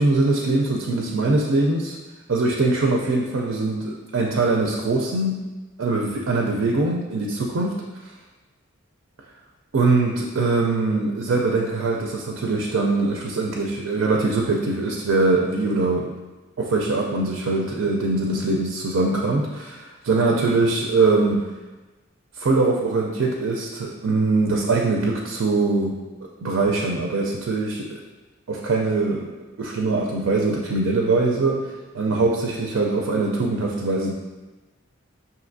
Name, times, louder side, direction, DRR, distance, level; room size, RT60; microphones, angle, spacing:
voice 1, 0.0-2.0 2.3-5.4 5.8-7.8 9.7-16.1 16.6-21.4 22.4-25.9 26.4-28.0 28.5-29.3 29.6-31.6 31.9-34.1, right 3 dB, 75° right, 0 dB, 0.4 m, -22 dB
5.8 x 2.7 x 2.6 m, 1.2 s
head